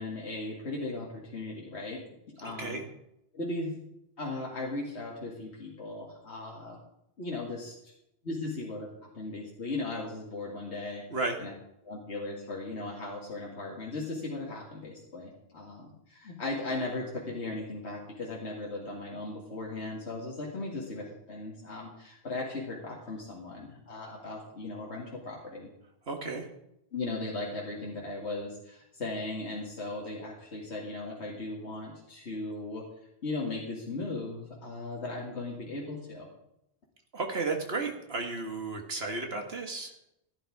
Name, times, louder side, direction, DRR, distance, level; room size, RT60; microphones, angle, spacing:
voice 1, 0.0-2.0 2.4-2.8 3.3-3.8 4.2-6.8 7.2-7.9 8.2-8.9 9.1-11.0 11.4-11.5 11.8-25.7 26.9-32.8 33.2-36.3, left 2 dB, 75° left, -3 dB, 2.3 m, -37 dB
voice 2, 2.4-2.8 11.1-11.4 26.1-26.5 37.1-39.9, right 3 dB, 65° right, 3 dB, 2.0 m, -33 dB
15.5 x 11.0 x 4.8 m, 0.81 s
omnidirectional pair, 1.1 m